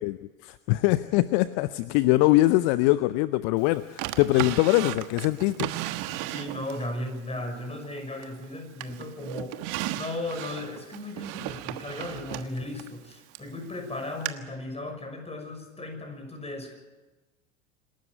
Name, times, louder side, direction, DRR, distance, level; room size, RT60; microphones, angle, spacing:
voice 1, 0.0-5.7, left 18 dB, 50° left, 15 dB, 0.7 m, -23 dB
Drawer open or close, 4.0-6.9 7.4-8.4 8.8-13.5 14.3-14.4, right 15 dB, 50° right, 1.4 m, -35 dB
voice 2, 6.3-9.6 9.9-16.7, left 2 dB, 15° left, 5 dB, 6.1 m, -36 dB
27.0 x 13.0 x 9.6 m, 1.2 s
figure-of-eight pair, 75°, 41 cm